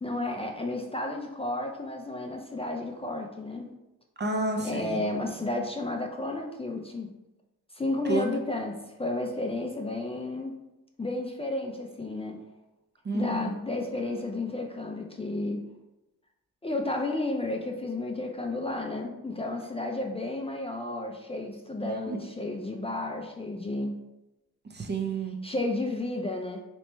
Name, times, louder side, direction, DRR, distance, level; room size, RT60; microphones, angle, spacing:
voice 1, 0.0-3.7 4.6-7.1 7.7-10.5 11.0-12.4 13.1-15.6 16.6-24.0 25.4-26.6, left 2 dB, 20° left, 1 dB, 0.4 m, -32 dB
voice 2, 4.2-5.0 8.1-8.4 13.0-13.5 21.8-22.3 24.7-25.4, right 2 dB, 30° right, 3 dB, 0.6 m, -31 dB
3.0 x 3.0 x 3.3 m, 0.95 s
cardioid pair, 60°, 33 cm